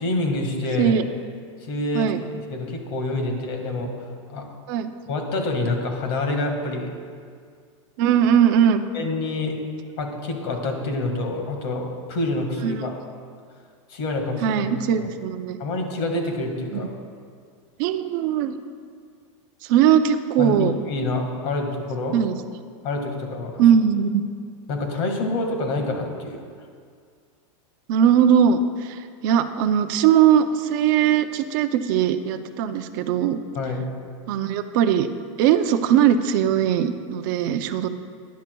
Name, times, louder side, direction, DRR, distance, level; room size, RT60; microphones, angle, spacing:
voice 1, 0.0-0.9 1.6-2.1 2.5-3.9 4.3-4.4 5.1-6.9 8.9-9.6 10.0-13.0 13.9-14.7 15.0-15.1 15.6-16.9 20.4-20.5 20.9-22.1 22.8-23.6 24.7-26.4 33.6-33.9, left 2 dB, 45° left, 3 dB, 1.8 m, -27 dB
voice 2, 8.0-8.8 12.6-12.9 14.4-15.6 17.8-18.6 19.6-20.7 22.1-22.3 23.6-24.2 27.9-33.4 34.3-35.1 35.4-37.9, right 9 dB, 40° right, 8 dB, 0.6 m, -20 dB
19.5 x 10.5 x 2.3 m, 2.1 s
supercardioid pair, 175°, 17 cm